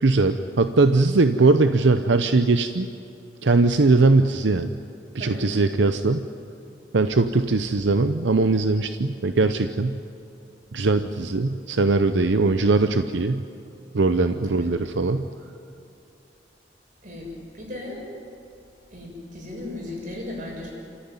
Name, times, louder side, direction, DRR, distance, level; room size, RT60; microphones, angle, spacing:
voice 1, 0.0-2.9 3.4-4.8 5.1-6.3 6.9-10.0 10.7-13.4 13.9-15.3, right 3 dB, 85° right, 9 dB, 0.7 m, -20 dB
voice 2, 14.4-14.9 17.0-18.1 18.9-20.7, left 2 dB, 45° right, -2 dB, 6.8 m, -36 dB
27.5 x 14.5 x 9.7 m, 2.7 s
head